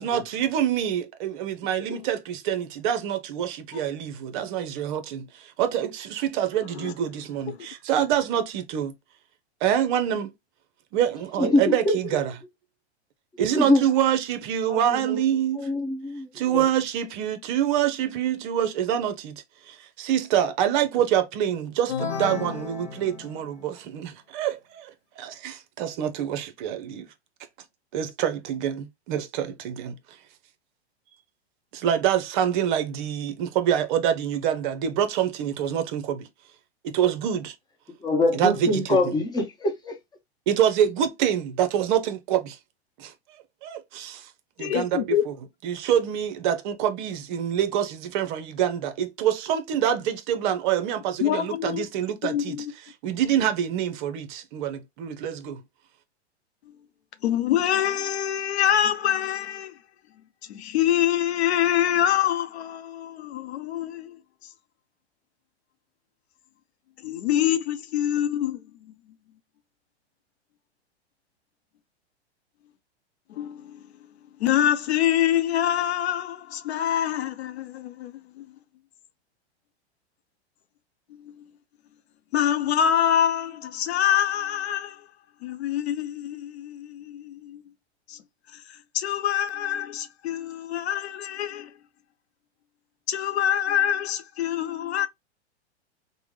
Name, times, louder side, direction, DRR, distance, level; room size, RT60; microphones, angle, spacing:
voice 1, 0.0-8.9 9.6-10.3 10.9-12.3 13.4-15.7 16.3-27.1 27.9-30.0 31.7-36.3 36.8-37.5 38.3-39.1 40.5-42.6 43.0-43.1 43.6-44.3 44.6-45.3 45.6-52.6 53.0-55.6, right 10 dB, 45° right, 0.7 m, -26 dB
voice 2, 11.4-12.0 13.5-13.8 14.7-15.2 15.6-16.6 38.0-40.0, left 2 dB, 10° left, 0.9 m, -24 dB
sound 1, 21.9-23.7, left 6 dB, 55° left, 1.1 m, -33 dB
voice 3, 44.6-45.2 51.2-51.8 52.2-52.7 56.7-56.8 57.2-59.8 60.5-64.2 67.0-68.6 73.3-73.9 74.4-78.5 81.1-81.5 82.3-85.1 85.4-87.6 88.1-88.2 88.5-91.8 93.1-95.1, left 10 dB, 70° left, 0.7 m, -25 dB
3.4 x 2.1 x 3.2 m
hypercardioid pair, 115°, 33 cm